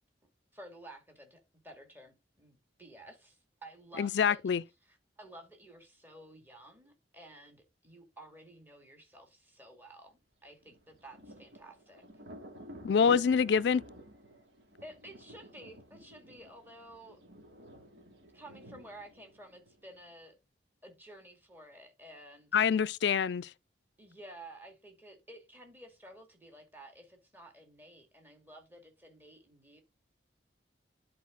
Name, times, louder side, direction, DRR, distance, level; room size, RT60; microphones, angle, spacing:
voice 1, 0.5-4.4 4.8-12.0 14.8-17.2 18.3-20.4 20.8-22.5 24.0-29.8, right 1 dB, 10° right, 2.3 m, -52 dB
voice 2, 4.0-4.6 12.8-13.8 22.5-23.5, left 6 dB, 70° left, 0.4 m, -26 dB
Thunder, 10.6-20.1, equal, 80° right, 2.6 m, -52 dB
10.5 x 4.8 x 3.9 m
head